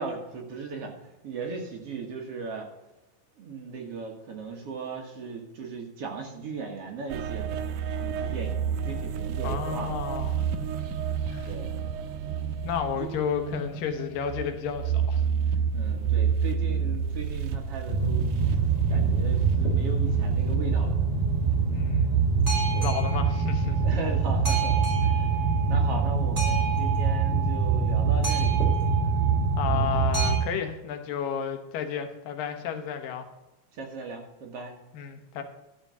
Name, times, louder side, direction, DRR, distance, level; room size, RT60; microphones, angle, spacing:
voice 1, 0.0-2.7 3.4-7.5 8.0-10.0 11.4-11.7 13.0-13.1 15.7-18.3 18.9-21.0 22.7-23.0 23.8-25.3 25.7-28.6 32.7-32.8 33.7-34.8, right 4 dB, 55° right, 2 dB, 2.0 m, -37 dB
sound 1, 7.1-22.6 23.0-23.3, right 7 dB, 75° right, 2.1 m, -30 dB
voice 2, 9.4-10.5 11.3-11.5 12.6-15.2 21.7-22.2 22.8-23.8 29.6-33.3 34.9-35.4, left 8 dB, 75° left, 6 dB, 2.7 m, -32 dB
Boat Water vehicle, 17.9-30.4, right 5 dB, 20° right, 3.2 m, -24 dB
12.5 x 5.0 x 6.8 m, 1.0 s
omnidirectional pair, 4.1 m